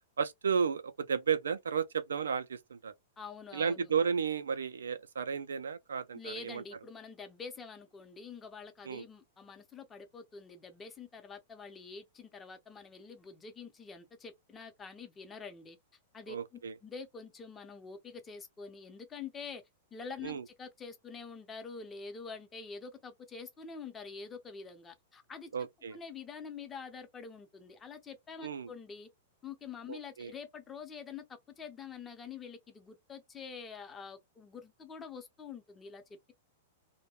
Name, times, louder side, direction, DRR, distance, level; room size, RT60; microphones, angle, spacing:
voice 1, 0.2-2.9 3.5-6.6 8.9-9.0 16.3-16.7 20.2-20.4 25.5-26.0 28.4-28.7 29.9-30.3, right 6 dB, 90° right, 0.4 m, -33 dB
voice 2, 3.2-3.9 6.1-15.8 16.1-19.6 19.9-29.1 29.4-36.3, left 5 dB, 20° left, 0.7 m, -46 dB
2.2 x 2.2 x 2.9 m
hypercardioid pair, 125°, 0 cm